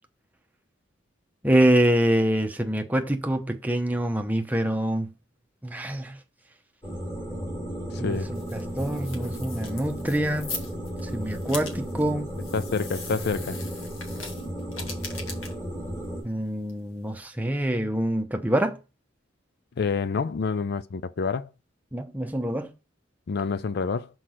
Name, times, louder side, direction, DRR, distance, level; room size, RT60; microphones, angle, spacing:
voice 1, 1.4-5.1 5.6-6.2 8.0-10.6 11.0-12.4 16.2-18.8 21.9-22.7, right 1 dB, 10° right, 0.7 m, -25 dB
sound 1, 6.8-16.2, equal, 10° left, 2.4 m, -34 dB
voice 2, 7.9-8.3 12.5-13.6 19.8-21.5 23.3-24.1, left 5 dB, 55° left, 0.4 m, -28 dB
sound 2, 8.0-17.3, left 4 dB, 90° left, 1.7 m, -42 dB
6.0 x 4.7 x 6.3 m
head